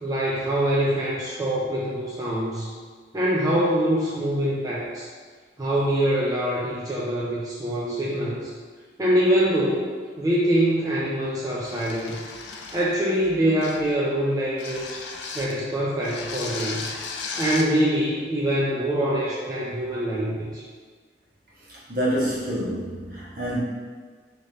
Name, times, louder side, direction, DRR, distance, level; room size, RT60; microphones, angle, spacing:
voice 1, 0.0-2.7 3.1-5.1 5.6-8.5 9.0-12.2 12.7-15.0 15.4-16.8 17.4-20.6, right 1 dB, 20° right, -7 dB, 0.4 m, -24 dB
sound 1, 11.6-13.0 13.6-13.9 14.6-15.6 16.0-17.7, left 4 dB, 70° left, 0.4 m, -35 dB
voice 2, 21.9-23.6, equal, 50° right, -8 dB, 1.1 m, -27 dB
3.1 x 2.8 x 3.8 m, 1.6 s
head